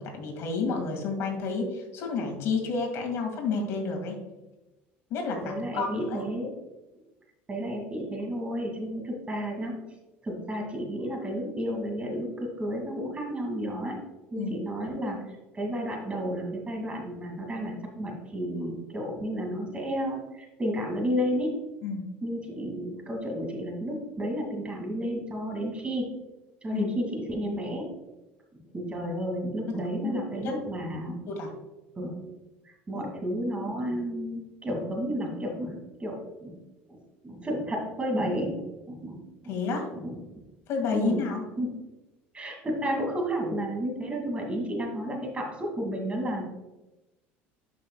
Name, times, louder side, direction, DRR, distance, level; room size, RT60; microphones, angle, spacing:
voice 1, 0.0-4.2 5.1-6.2 14.4-14.5 21.8-22.0 26.7-26.9 29.7-29.8 30.0-30.2 30.4-30.5 31.3-31.5 32.9-33.1 39.5-39.9 40.7-41.4, left 4 dB, 55° left, 2 dB, 2.1 m, -30 dB
voice 2, 5.4-6.5 7.5-9.7 10.2-14.0 14.3-15.2 15.5-21.6 22.2-26.1 26.6-27.9 28.7-31.2 32.0-32.2 32.6-36.6 36.9-39.6 39.9-40.2 40.9-41.2 41.6-41.8 42.3-46.4, equal, 20° right, 1 dB, 2.4 m, -32 dB
11.5 x 5.5 x 2.3 m, 1.0 s
supercardioid pair, 100°, 5 cm